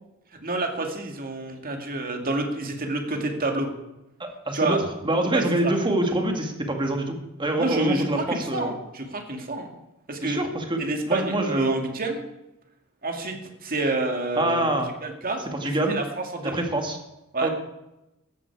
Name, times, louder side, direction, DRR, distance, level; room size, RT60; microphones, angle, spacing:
voice 1, 0.3-3.7 4.5-4.8 5.2-5.7 7.6-9.7 10.1-10.4 10.8-12.2 13.0-14.6 15.0-16.6 17.3-17.5, right 2 dB, 40° right, 3 dB, 2.4 m, -28 dB
voice 2, 4.2-4.8 5.0-8.7 10.2-11.8 14.4-14.9 15.6-16.0 16.4-17.0 17.4-17.5, right 1 dB, 20° right, 3 dB, 2.2 m, -25 dB
15.5 x 13.0 x 4.8 m, 0.93 s
head